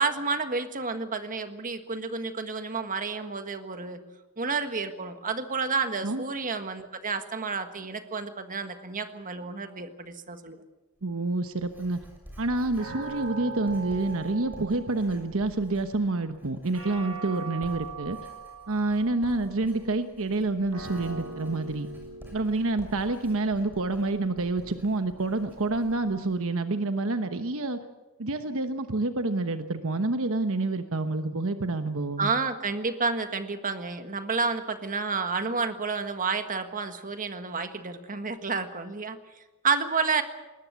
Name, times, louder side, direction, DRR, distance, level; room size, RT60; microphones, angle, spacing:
voice 1, 0.0-4.0 4.4-10.6 32.2-39.2 39.6-40.2, right 4 dB, 40° right, 8 dB, 1.6 m, -30 dB
Writing, 11.0-26.3, equal, 10° right, 6.6 m, -50 dB
voice 2, 11.0-12.0 12.4-18.2 18.7-21.9 22.3-27.8 28.2-32.4, right 2 dB, 65° right, 8 dB, 1.1 m, -28 dB
sound 1, 12.8-15.4 16.7-19.3 20.7-23.3, right 4 dB, 85° right, 6.7 m, -41 dB
21.0 x 19.0 x 8.2 m, 1.1 s
head